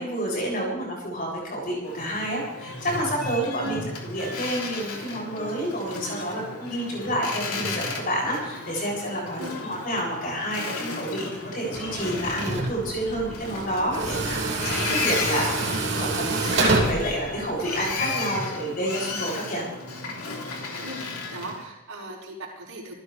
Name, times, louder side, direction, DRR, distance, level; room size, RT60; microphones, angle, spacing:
voice 1, 0.0-3.8 4.0-19.6, equal, 40° left, -3 dB, 7.3 m, -29 dB
Boat Water vehicle, 1.8-21.6, left 3 dB, 85° left, 3.4 m, -34 dB
Tools, 11.7-18.0, right 3 dB, 55° right, 3.1 m, -28 dB
voice 2, 21.3-22.9, right 2 dB, 75° right, -4 dB, 5.2 m, -37 dB
27.0 x 15.0 x 3.4 m, 0.92 s
head